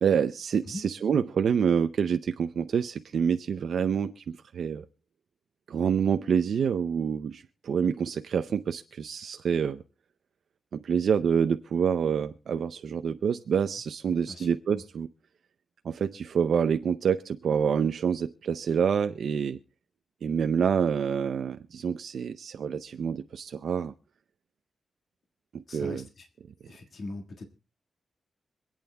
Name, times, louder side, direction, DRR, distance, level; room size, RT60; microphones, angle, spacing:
voice 1, 0.0-4.8 5.7-9.8 10.7-15.1 15.8-19.6 20.2-23.9 25.5-26.0, right 7 dB, 65° right, 8 dB, 0.5 m, -27 dB
voice 2, 14.3-14.8 25.7-26.3 26.7-27.4, left 2 dB, 50° left, 4 dB, 1.6 m, -41 dB
26.0 x 8.8 x 2.2 m, 0.34 s
wide cardioid pair, 165°, 0 cm